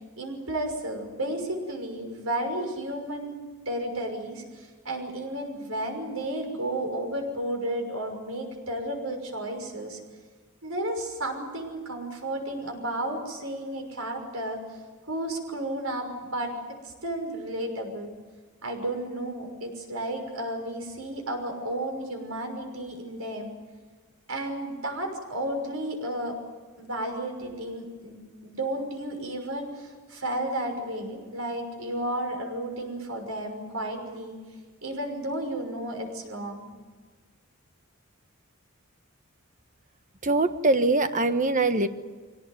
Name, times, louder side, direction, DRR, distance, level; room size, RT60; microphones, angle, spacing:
voice 1, 0.2-3.4 3.7-10.0 10.6-14.8 15.1-16.5 16.8-18.1 18.6-23.5 24.3-26.4 26.8-34.4 34.8-36.7, right 1 dB, 85° right, 3 dB, 6.1 m, -32 dB
voice 2, 40.2-41.9, right 2 dB, 40° right, 9 dB, 1.4 m, -22 dB
24.0 x 18.5 x 9.5 m, 1.4 s
head